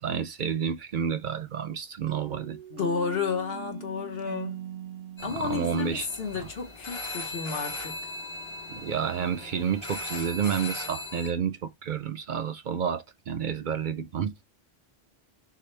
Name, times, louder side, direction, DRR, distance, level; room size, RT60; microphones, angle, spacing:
voice 1, 0.0-2.6 5.2-6.1 8.7-14.4, right 7 dB, 60° right, 0.6 m, -30 dB
sound 1, 2.1-6.8, right 9 dB, 90° right, 0.9 m, -42 dB
voice 2, 2.7-4.6 5.2-8.0, left 5 dB, 65° left, 1.4 m, -32 dB
sound 2, 5.2-11.3, left 2 dB, 30° left, 0.8 m, -38 dB
6.4 x 2.2 x 3.2 m
omnidirectional pair, 1.1 m